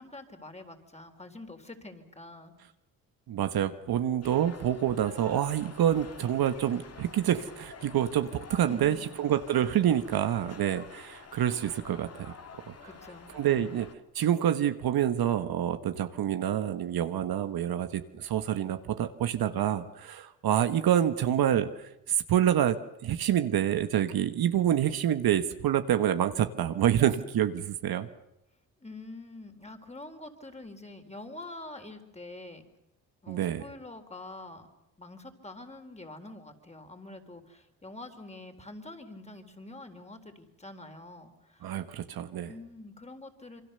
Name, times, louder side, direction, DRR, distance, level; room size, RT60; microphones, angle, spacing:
voice 1, 0.0-2.5 8.7-9.2 12.8-13.3 28.8-32.6 33.2-34.7 35.0-41.8 42.5-43.6, left 2 dB, 15° left, 6 dB, 4.0 m, -46 dB
voice 2, 3.3-12.3 12.7-12.8 13.3-13.9 14.1-28.1 33.3-33.6 41.6-42.5, right 10 dB, 65° right, 9 dB, 1.4 m, -27 dB
sound 1, 4.2-13.9, left 5 dB, 40° left, 2.4 m, -49 dB
27.5 x 23.5 x 6.8 m, 0.87 s
supercardioid pair, 65°, 39 cm